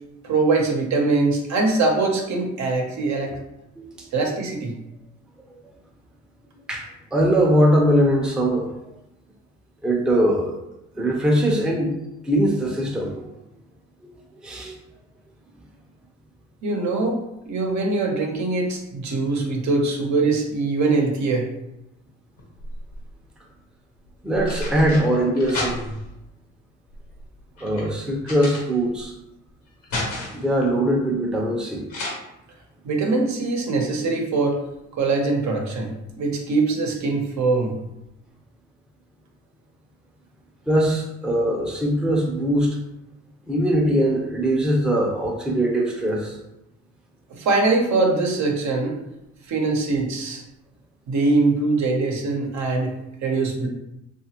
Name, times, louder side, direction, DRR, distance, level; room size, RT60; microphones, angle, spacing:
voice 1, 0.2-3.4 4.1-4.8 16.6-17.2 17.5-21.5 32.8-34.6 34.9-37.8 47.3-49.0 49.5-50.4 51.1-53.0 53.2-53.7, right 3 dB, 65° right, 1 dB, 0.8 m, -22 dB
voice 2, 3.8-4.1 6.7-8.7 9.8-10.6 11.0-12.0 12.2-13.3 14.0-14.1 14.4-14.8 24.2-25.9 27.6-29.1 30.3-31.9 40.7-42.8 43.5-46.4, equal, 5° right, -1 dB, 0.5 m, -21 dB
sound 1, 22.4-23.2 24.1-26.2 26.9-29.1 29.5-30.5 31.9-32.1, left 1 dB, 85° left, 1.0 m, -32 dB
2.8 x 2.4 x 2.9 m, 0.88 s
cardioid pair, 90°, 30 cm